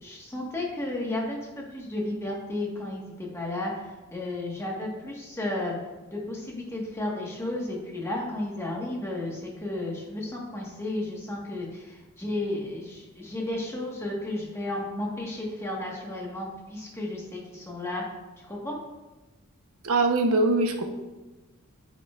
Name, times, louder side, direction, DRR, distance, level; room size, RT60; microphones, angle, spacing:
voice 1, 0.0-5.7 6.1-18.0 18.4-18.8, left 1 dB, 10° left, -3 dB, 1.5 m, -33 dB
voice 2, 19.8-20.8, right 2 dB, 75° right, 4 dB, 1.0 m, -22 dB
8.7 x 8.1 x 2.5 m, 1.1 s
head